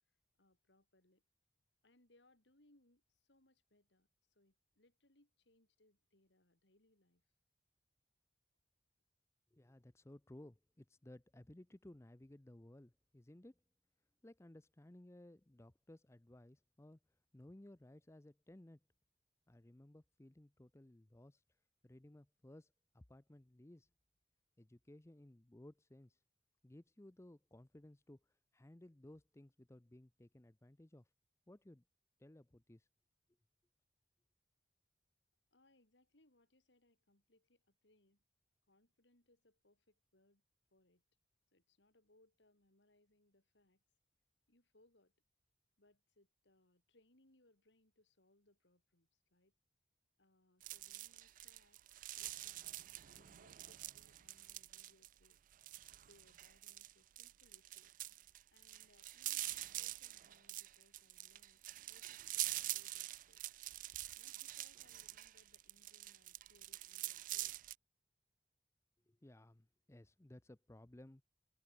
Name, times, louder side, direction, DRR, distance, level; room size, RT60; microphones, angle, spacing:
voice 1, 0.4-1.2 1.8-7.2 35.5-38.2 38.7-40.4 40.7-41.0 41.5-43.8 44.5-45.1 45.8-49.5 50.2-51.8 52.2-52.8 53.0-55.4 56.1-57.9 58.5-61.6 61.9-63.4 64.2-67.6, left 1 dB, 80° left, 4.1 m, -73 dB
voice 2, 9.5-13.6 14.2-17.0 17.3-18.8 19.5-21.4 21.8-23.9 24.6-26.2 26.6-28.2 28.5-31.1 31.5-31.8 32.2-32.9 69.1-71.2, left 1 dB, 15° left, 0.6 m, -59 dB
sound 1, 50.6-67.7, right 16 dB, 45° right, 0.4 m, -46 dB
head